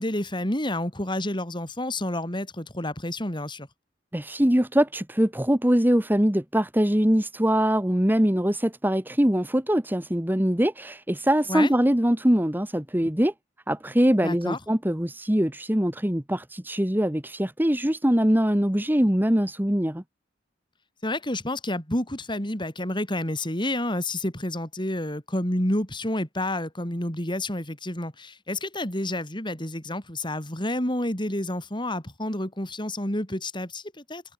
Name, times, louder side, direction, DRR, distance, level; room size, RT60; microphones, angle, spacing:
voice 1, 0.0-3.7 11.5-11.7 14.2-14.6 21.0-34.2, left 1 dB, 25° left, 5.2 m, -29 dB
voice 2, 4.1-13.3 13.7-20.0, equal, 10° right, 1.4 m, -23 dB
head